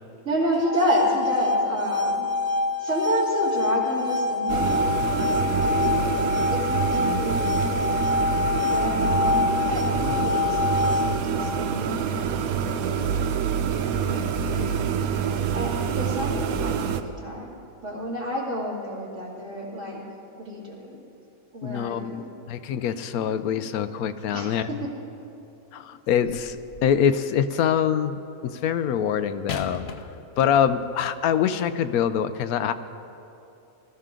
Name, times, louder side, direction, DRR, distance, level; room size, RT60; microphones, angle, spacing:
voice 1, 0.2-2.3 2.8-6.0 6.5-7.9 8.6-13.0 13.9-14.8 15.5-20.0 20.4-21.0 21.5-22.3 24.3-24.9, equal, 60° right, -4 dB, 3.0 m, -30 dB
sound 1, 0.5-11.5, left 4 dB, 45° right, 0.5 m, -25 dB
sound 2, 4.5-17.0, right 7 dB, 85° right, 1.2 m, -26 dB
voice 2, 21.6-24.7 25.7-29.9 30.4-32.7, left 8 dB, 85° left, 11 dB, 1.1 m, -24 dB
sound 3, 26.4-27.1 29.5-31.0 31.8-31.9, left 5 dB, 55° left, 0.9 m, -38 dB
20.0 x 13.5 x 3.8 m, 2.9 s
omnidirectional pair, 1.5 m